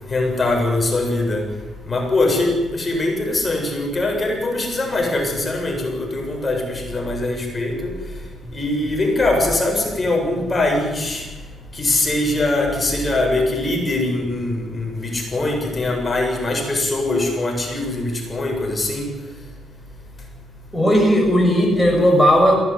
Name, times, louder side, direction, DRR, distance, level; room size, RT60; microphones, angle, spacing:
voice 1, 0.1-1.4 1.9-7.9 8.5-11.2 11.8-19.1, left 2 dB, 25° left, 2 dB, 7.4 m, -22 dB
voice 2, 20.7-22.6, equal, ahead, 0 dB, 6.9 m, -15 dB
22.0 x 17.5 x 9.8 m, 1.2 s
cardioid pair, 90°, 0 cm